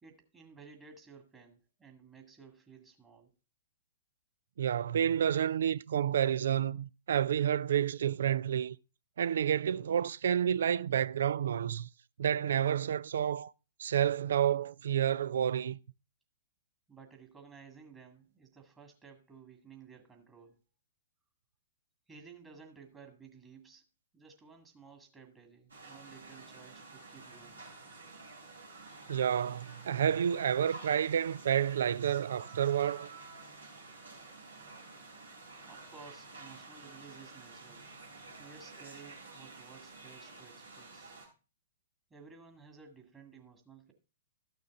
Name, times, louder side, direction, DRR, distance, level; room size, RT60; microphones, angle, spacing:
voice 1, 0.0-3.3 16.9-20.6 22.1-23.8 24.1-27.7 35.7-37.9 38.4-41.2 42.1-43.9, right 5 dB, 15° right, 2.0 m, -55 dB
voice 2, 4.6-8.8 9.2-11.9 12.2-13.5 13.8-15.8 29.1-33.1, right 9 dB, 60° right, 0.4 m, -29 dB
sound 1, 25.7-41.3, right 3 dB, 75° right, 4.1 m, -50 dB
13.5 x 6.5 x 3.6 m
figure-of-eight pair, 110°, 0 cm